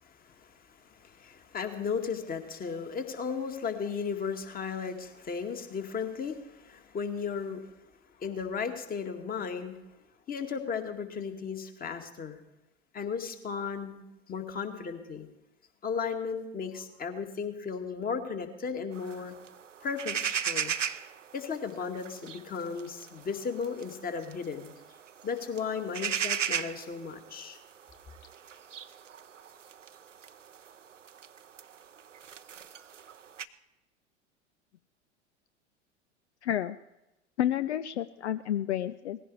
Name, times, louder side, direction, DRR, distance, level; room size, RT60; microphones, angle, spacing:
voice 1, 0.0-7.7 8.2-9.7 10.3-12.4 12.9-15.3 15.8-19.3 19.8-20.7 21.3-24.7 25.2-27.6, left 6 dB, 25° left, 6 dB, 2.0 m, -35 dB
sound 1, 18.9-33.5, right 8 dB, 85° right, 0.7 m, -38 dB
voice 2, 36.4-36.8 37.4-39.2, left 11 dB, 65° left, 13 dB, 0.7 m, -30 dB
19.0 x 15.5 x 4.7 m, 0.95 s
figure-of-eight pair, 85°, 36 cm